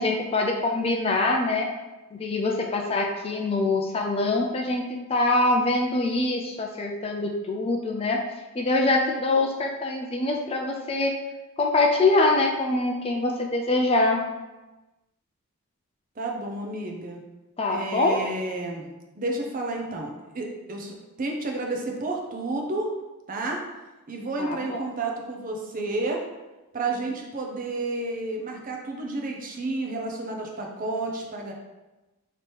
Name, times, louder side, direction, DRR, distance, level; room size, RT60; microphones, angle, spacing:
voice 1, 0.0-1.7 2.1-8.2 8.5-11.1 11.6-14.2 17.6-18.2 24.4-24.8, left 2 dB, 25° left, 2 dB, 0.3 m, -24 dB
voice 2, 16.2-17.2 17.7-18.9 19.2-22.9 23.3-23.6 24.1-26.2 26.7-31.5, right 2 dB, 40° right, 1 dB, 0.5 m, -31 dB
3.3 x 2.9 x 4.5 m, 1.1 s
head